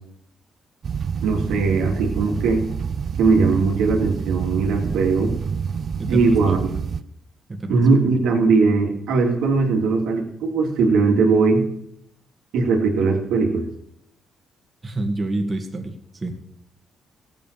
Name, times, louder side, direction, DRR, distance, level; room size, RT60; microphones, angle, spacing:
sound 1, 0.8-7.0, right 6 dB, 50° right, 0.7 m, -28 dB
voice 1, 1.2-2.7 3.2-5.3 6.1-6.6 7.7-11.6 12.5-13.7, right 4 dB, 90° right, 0 dB, 2.9 m, -19 dB
voice 2, 6.0-6.7 7.5-7.9 14.8-16.3, right 2 dB, 30° right, 4 dB, 2.0 m, -28 dB
15.5 x 8.9 x 6.8 m, 0.72 s
cardioid pair, 90°, 0 cm